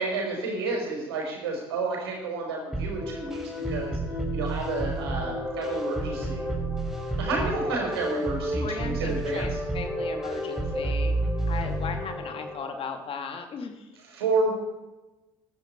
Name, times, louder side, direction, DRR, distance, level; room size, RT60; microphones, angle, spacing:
voice 1, 0.0-3.4 3.7-4.0 4.3-6.4 7.2-9.4 14.1-14.5, right 3 dB, 90° right, 0 dB, 4.9 m, -30 dB
sound 1, 2.7-12.8, right 1 dB, 5° right, 4.6 m, -30 dB
voice 2, 8.6-13.9, left 5 dB, 45° left, 6 dB, 2.5 m, -37 dB
14.5 x 12.5 x 4.6 m, 1.1 s
hypercardioid pair, 70°, 13 cm